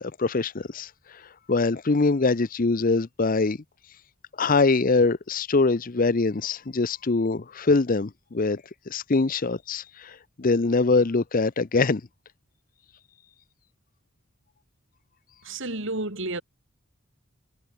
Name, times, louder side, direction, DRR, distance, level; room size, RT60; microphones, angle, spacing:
voice 1, 0.0-3.6 4.4-12.0, left 3 dB, 40° left, 0.6 m, -23 dB
voice 2, 15.4-16.4, right 2 dB, 60° right, 3.9 m, -31 dB
head